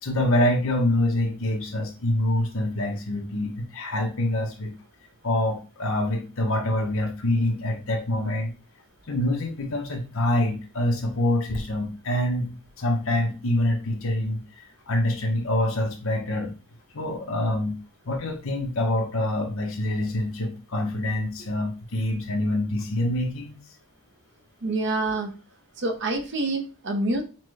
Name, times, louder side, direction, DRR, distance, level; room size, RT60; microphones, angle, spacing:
voice 1, 0.0-4.7 5.2-8.5 9.1-12.5 12.8-16.5 16.9-17.8 18.1-23.5, left 1 dB, 60° left, 2 dB, 1.0 m, -25 dB
voice 2, 24.6-25.3 25.8-27.2, right 2 dB, 55° right, 5 dB, 0.7 m, -26 dB
5.7 x 2.2 x 3.2 m, 0.34 s
head